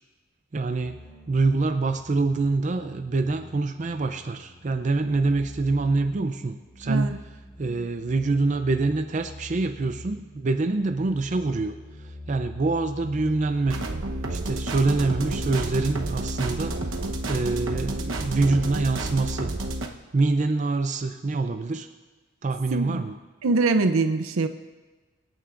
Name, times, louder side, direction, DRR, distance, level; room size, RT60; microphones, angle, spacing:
voice 1, 0.5-1.0 1.3-7.2 7.6-13.8 14.3-16.9 17.3-19.5 20.1-21.9 22.4-23.2, right 3 dB, 35° right, 7 dB, 0.4 m, -25 dB
sound 1, 0.8-15.9, left 1 dB, 10° left, 2.9 m, -45 dB
voice 2, 6.8-7.2 7.6-7.8 22.7-23.0 23.4-24.5, right 3 dB, 85° right, 9 dB, 0.6 m, -23 dB
sound 2, 13.7-19.9, right 2 dB, 70° right, 1.0 m, -30 dB
25.0 x 9.1 x 2.5 m, 1.3 s
head